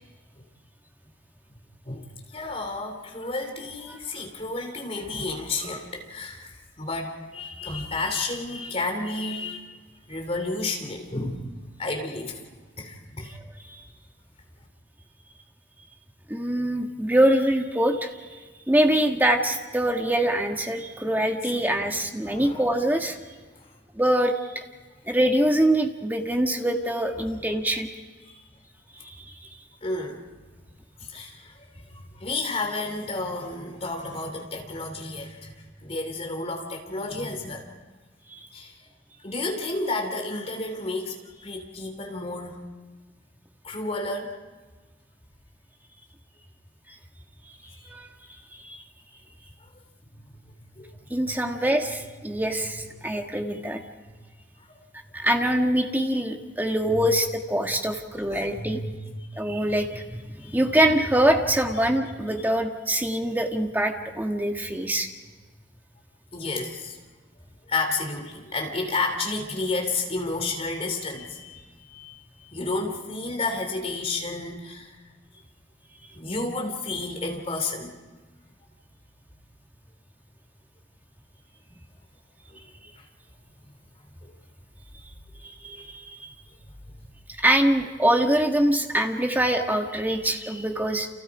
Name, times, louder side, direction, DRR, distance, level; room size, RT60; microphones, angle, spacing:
voice 1, 1.8-9.7 10.1-11.5 11.8-12.5 12.8-13.3 21.4-21.5 22.2-22.6 23.5-23.7 27.1-27.6 28.2-28.4 29.8-30.2 31.0-37.8 38.5-38.7 39.2-42.6 43.6-44.3 47.6-47.9 50.1-50.4 50.7-51.4 52.3-52.4 52.8-53.1 54.0-54.2 54.7-54.8 56.9-57.1 58.3-59.6 60.4-60.6 62.4-62.5 66.3-67.0 67.7-75.0 76.1-77.9 82.5-82.6 83.0-83.1 84.2-84.3 86.9-87.0, left 2 dB, 30° left, 3 dB, 3.2 m, -32 dB
voice 2, 16.3-18.1 18.7-23.2 24.0-24.6 25.1-27.9 29.0-29.2 47.9-48.4 48.6-48.8 51.1-53.8 55.1-58.8 59.4-65.1 85.4-86.3 87.4-91.1, right 1 dB, 10° right, 3 dB, 1.6 m, -24 dB
29.5 x 28.5 x 4.9 m, 1.3 s
head